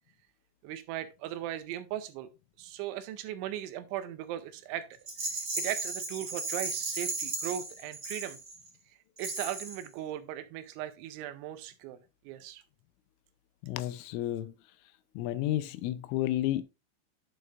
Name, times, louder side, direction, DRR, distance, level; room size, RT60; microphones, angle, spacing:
voice 1, 0.6-2.3 2.6-4.9 5.2-8.4 9.2-12.0 12.2-12.6, right 11 dB, 85° right, 2.9 m, -38 dB
Rattle, 5.0-8.7 9.2-9.9, right 3 dB, 40° right, 1.4 m, -35 dB
voice 2, 13.6-14.5 15.2-16.6, left 14 dB, 85° left, 3.1 m, -31 dB
9.1 x 8.4 x 2.5 m
omnidirectional pair, 5.6 m